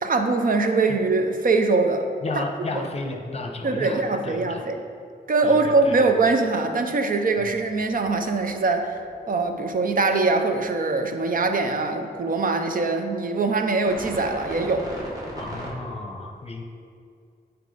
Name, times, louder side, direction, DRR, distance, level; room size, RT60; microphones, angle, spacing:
voice 1, 0.0-2.1 2.4-2.5 2.7-2.8 3.6-4.8 5.3-9.0 9.3-14.9, right 3 dB, 55° right, 6 dB, 0.6 m, -22 dB
voice 2, 2.2-4.6 5.4-6.0 7.4-7.5 15.4-16.6, left 2 dB, 35° left, 2 dB, 0.8 m, -33 dB
sound 1, 7.7-11.9 13.8-15.7, equal, 20° right, 1.4 m, -39 dB
8.2 x 4.6 x 3.9 m, 2.3 s
wide cardioid pair, 130°, 17 cm